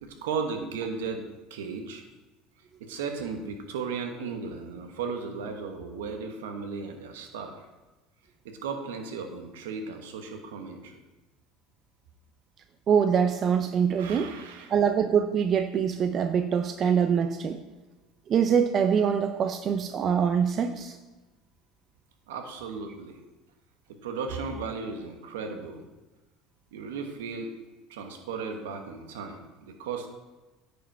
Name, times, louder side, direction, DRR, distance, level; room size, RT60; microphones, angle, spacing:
voice 1, 0.0-2.0 2.8-7.7 8.4-11.0 14.0-14.7 22.3-23.2 23.9-25.8 26.7-27.5 27.9-30.1, right 5 dB, 85° right, 5 dB, 1.2 m, -35 dB
voice 2, 12.9-14.3 14.7-17.6 18.3-20.9, right 7 dB, 45° right, 7 dB, 0.6 m, -24 dB
10.0 x 5.1 x 4.5 m, 1.1 s
supercardioid pair, 90°, 0 cm